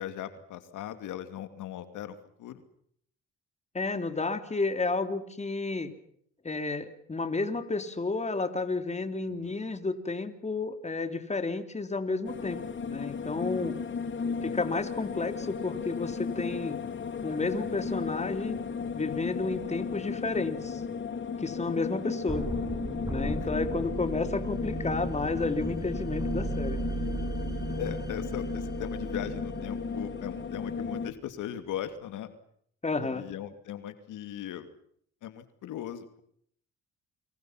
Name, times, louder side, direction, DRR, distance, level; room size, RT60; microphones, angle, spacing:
voice 1, 0.0-2.6 9.4-9.6 14.3-14.6 20.2-20.3 23.4-23.5 27.8-32.3 33.0-34.7 35.2-36.2, left 10 dB, 85° left, 10 dB, 2.6 m, -39 dB
voice 2, 3.7-5.9 6.4-12.6 12.9-13.7 14.4-16.8 17.2-18.6 18.9-20.8 21.4-22.5 23.1-26.8 32.8-33.3, left 3 dB, 20° left, 8 dB, 3.2 m, -31 dB
sound 1, 12.2-31.1, left 5 dB, 40° left, 2.3 m, -35 dB
sound 2, 22.3-31.1, right 2 dB, 10° right, 7.8 m, -36 dB
29.5 x 25.0 x 5.9 m, 0.66 s
cardioid pair, 90°, 30 cm